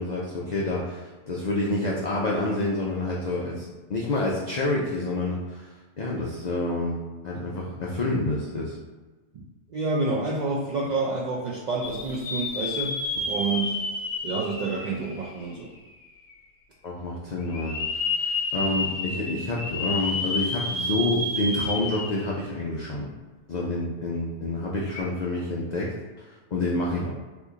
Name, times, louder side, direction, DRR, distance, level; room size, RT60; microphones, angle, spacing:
voice 1, 0.0-5.7 6.0-7.0 7.2-8.8 16.8-17.8 18.2-23.0 23.5-25.9 26.5-27.1, left 2 dB, 90° left, -4 dB, 0.3 m, -28 dB
voice 2, 9.7-13.9 14.2-15.7, right 3 dB, 90° right, -4 dB, 0.3 m, -28 dB
sound 1, 11.8-15.8 16.3-16.4 17.5-22.4 22.8-22.9 24.8-25.0, left 2 dB, 70° left, 0.8 m, -30 dB
2.9 x 2.5 x 3.6 m, 1.3 s
omnidirectional pair, 1.3 m